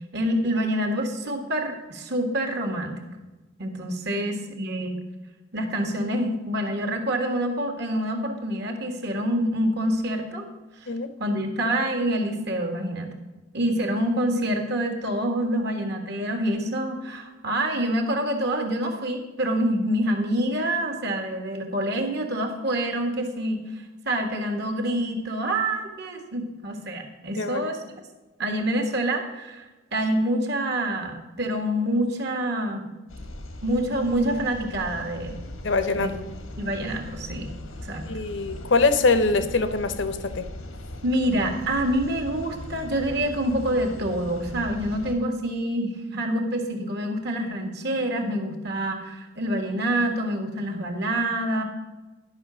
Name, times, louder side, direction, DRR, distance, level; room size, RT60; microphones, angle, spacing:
voice 1, 0.1-3.0 3.6-5.0 5.5-10.5 10.8-10.9 11.2-13.1 13.5-27.8 28.4-32.9 33.6-35.4 35.9-36.1 36.6-37.5 37.8-38.1 41.0-51.6, right 1 dB, 55° right, 4 dB, 1.7 m, -26 dB
voice 2, 27.4-27.7 35.6-36.1 38.1-40.5, left 3 dB, 60° left, 11 dB, 0.8 m, -23 dB
sound 1, 33.1-45.1, left 1 dB, 85° left, 1.3 m, -39 dB
11.5 x 5.8 x 6.2 m, 1.1 s
head